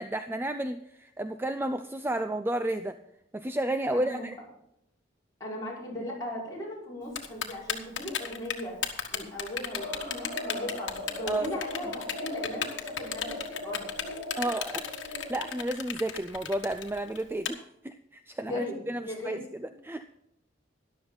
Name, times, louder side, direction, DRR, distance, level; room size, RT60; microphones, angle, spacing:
voice 1, 0.0-2.9 3.3-4.4 11.3-11.5 14.4-20.0, right 1 dB, 10° right, 9 dB, 0.4 m, -32 dB
voice 2, 3.9-4.3 5.4-8.7 9.1-12.7 13.0-13.8 18.4-18.7 19.0-19.4, left 1 dB, 20° left, -6 dB, 5.1 m, -37 dB
Typing, 7.2-17.5, left 8 dB, 70° left, 1.5 m, -34 dB
sound 1, 9.7-15.6, left 1 dB, 75° right, 4.9 m, -39 dB
13.5 x 11.5 x 4.0 m, 0.81 s
head